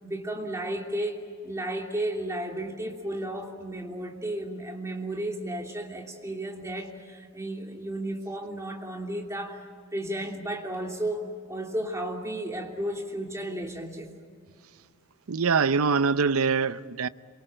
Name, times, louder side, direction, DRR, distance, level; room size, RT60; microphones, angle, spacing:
voice 1, 0.0-9.6 9.9-14.1, right 1 dB, 15° right, 3.1 m, -33 dB
voice 2, 15.3-17.1, right 5 dB, 75° right, 0.7 m, -24 dB
27.0 x 24.0 x 7.8 m
head